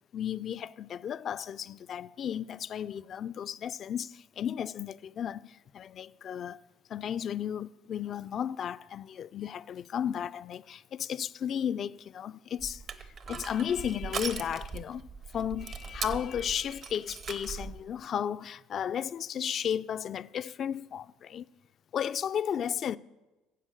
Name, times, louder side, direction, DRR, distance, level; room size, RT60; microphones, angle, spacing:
voice 1, 0.1-6.6 6.9-12.8 13.3-15.1 15.3-21.5 21.9-23.0, left 9 dB, 50° left, 0.4 m, -34 dB
Crushing, 12.6-17.8, right 5 dB, 50° right, 1.0 m, -39 dB
10.5 x 7.5 x 7.6 m
supercardioid pair, 80°, 0 cm